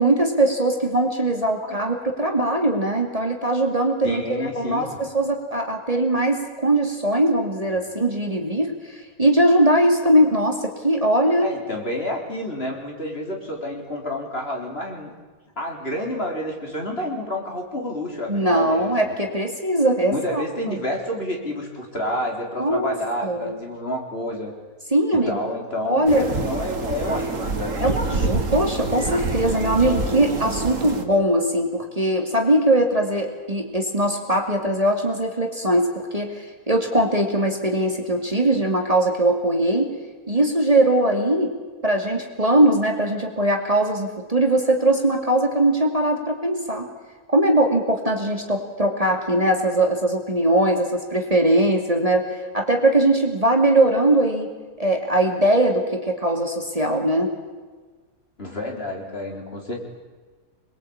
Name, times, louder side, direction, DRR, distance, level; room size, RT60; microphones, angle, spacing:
voice 1, 0.0-11.5 18.3-20.8 22.6-22.9 23.2-23.6 24.9-25.4 25.8-26.3 27.8-39.9 40.3-41.5 41.8-46.9 47.3-54.5 54.8-57.3, right 1 dB, 25° right, 3 dB, 2.6 m, -21 dB
voice 2, 4.0-5.0 11.3-15.1 15.6-19.2 20.1-24.5 25.1-28.0 58.4-59.8, left 1 dB, 40° left, 1 dB, 4.2 m, -29 dB
sound 1, 26.1-31.0, right 2 dB, 60° right, 2.5 m, -26 dB
27.0 x 22.0 x 8.7 m, 1.4 s
omnidirectional pair, 1.5 m